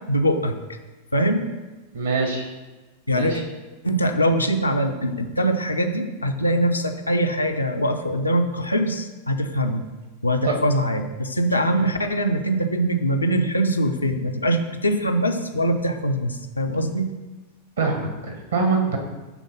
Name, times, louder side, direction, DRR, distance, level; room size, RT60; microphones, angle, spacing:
voice 1, 0.1-0.8 1.1-1.5 3.1-3.4 3.8-9.8 10.2-17.1, right 1 dB, 80° left, 5 dB, 0.5 m, -23 dB
voice 2, 1.9-2.5 3.1-3.4 10.4-10.5 11.8-11.9 17.8-19.0, right 4 dB, 70° right, 2 dB, 1.5 m, -24 dB
7.2 x 3.7 x 5.4 m, 1.2 s
figure-of-eight pair, 90°, 0 cm